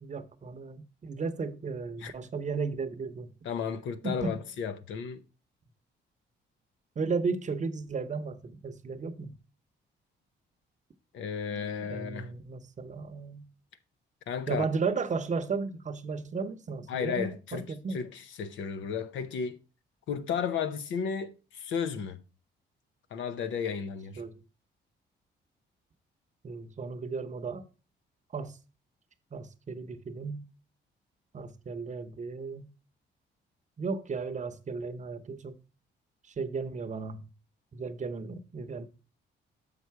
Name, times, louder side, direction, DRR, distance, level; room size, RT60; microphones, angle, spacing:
voice 1, 0.0-3.3 4.0-4.4 7.0-9.3 11.5-11.6 11.9-13.5 14.5-18.0 24.2-24.4 26.4-27.6 28.3-28.6 29.3-30.4 31.3-32.7 33.8-35.6 36.4-37.2 37.7-38.8, right 4 dB, 40° right, 0.8 m, -34 dB
voice 2, 3.4-5.2 11.1-12.3 14.3-14.7 16.9-19.6 20.1-22.2 23.1-24.2, left 6 dB, 75° left, 0.8 m, -34 dB
6.8 x 5.6 x 4.6 m
cardioid pair, 90°, 20 cm